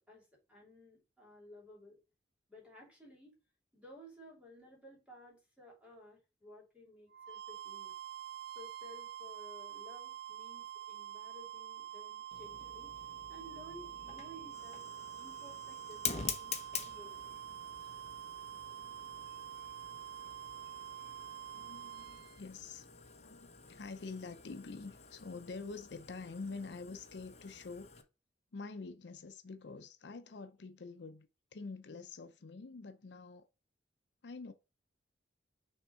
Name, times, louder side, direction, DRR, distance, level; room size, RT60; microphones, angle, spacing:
voice 1, 0.1-2.0 2.5-3.3 3.7-7.9 8.5-12.9 13.3-14.8 15.2-17.4, left 1 dB, 5° right, 2.7 m, -56 dB
sound 1, 7.1-22.4, right 11 dB, 60° right, 0.3 m, -47 dB
Fire, 12.3-28.0, left 7 dB, 35° left, 0.8 m, -47 dB
voice 2, 21.5-22.9 23.2-27.9 28.5-33.5 34.2-34.5, left 4 dB, 70° left, 0.6 m, -46 dB
6.4 x 3.5 x 4.4 m
head